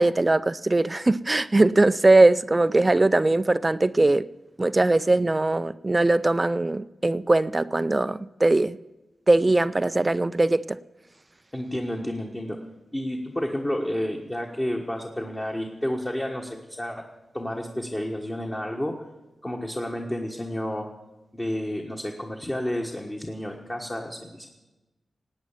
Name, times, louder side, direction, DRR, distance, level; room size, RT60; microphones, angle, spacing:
voice 1, 0.0-4.3 4.6-8.8 9.3-10.8, right 2 dB, 25° right, 0.4 m, -20 dB
voice 2, 11.5-12.6 12.9-17.0 17.3-18.9 19.4-20.9 21.3-24.5, left 1 dB, 20° left, 1.4 m, -30 dB
18.0 x 8.9 x 7.3 m
wide cardioid pair, 90°, 0 cm